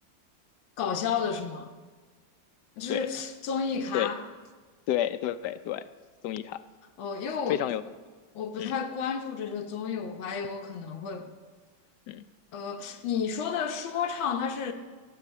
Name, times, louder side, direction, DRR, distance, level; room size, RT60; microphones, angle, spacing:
voice 1, 0.8-1.7 2.8-4.2 7.0-7.6 8.3-11.3 12.5-14.7, left 6 dB, 90° left, 6 dB, 1.7 m, -31 dB
voice 2, 4.9-5.8 6.2-6.6 7.5-7.8 8.6-8.7 12.1-12.2, left 12 dB, 75° left, 13 dB, 1.0 m, -30 dB
15.5 x 7.6 x 8.1 m, 1.4 s
omnidirectional pair, 2.1 m